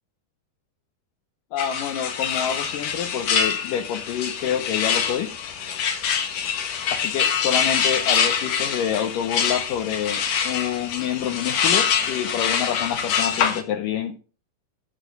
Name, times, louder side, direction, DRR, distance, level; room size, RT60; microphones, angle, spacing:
voice 1, 1.5-5.3 6.9-14.2, left 9 dB, 80° left, 7 dB, 1.9 m, -27 dB
sound 1, 1.6-13.6, left 7 dB, 55° left, 2.0 m, -25 dB
13.5 x 7.1 x 5.2 m, 0.36 s
omnidirectional pair, 5.0 m